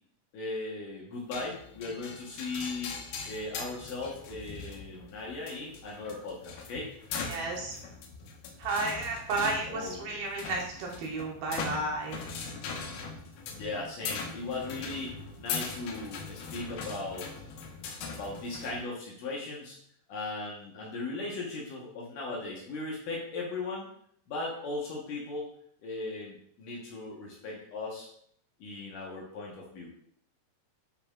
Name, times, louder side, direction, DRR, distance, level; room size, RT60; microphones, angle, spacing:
voice 1, 0.3-3.0 3.3-6.9 9.7-10.0 13.5-17.3 18.1-19.8 20.1-23.9 24.3-25.5 25.8-28.1 28.6-29.9, left 3 dB, 65° left, -3 dB, 2.1 m, -38 dB
sound 1, 1.3-18.8, left 5 dB, 90° left, 1.9 m, -41 dB
voice 2, 7.3-7.7 8.6-12.2, right 3 dB, 75° right, -1 dB, 2.5 m, -32 dB
9.6 x 5.5 x 2.4 m, 0.66 s
omnidirectional pair, 5.1 m